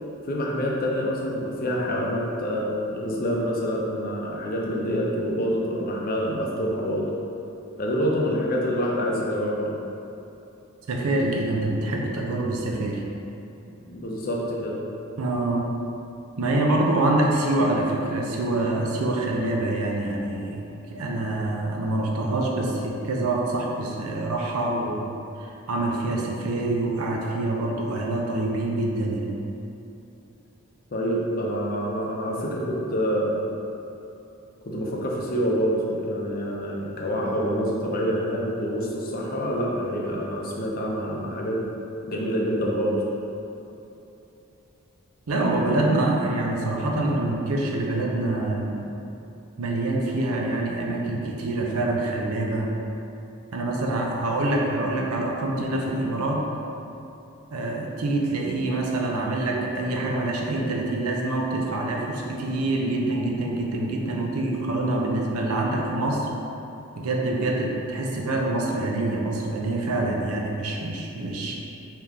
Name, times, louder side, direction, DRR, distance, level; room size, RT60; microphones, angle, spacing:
voice 1, 0.2-7.1 7.8-9.7 13.9-14.9 30.9-33.4 34.7-41.6 42.1-43.0, equal, 40° left, -3 dB, 0.5 m, -26 dB
voice 2, 10.9-13.0 15.2-15.7 16.4-25.1 25.4-29.4 45.3-48.8 49.6-52.7 53.5-56.5 57.5-66.3 67.0-71.5, right 2 dB, 85° right, -1 dB, 0.5 m, -26 dB
3.4 x 2.9 x 3.6 m, 2.8 s
head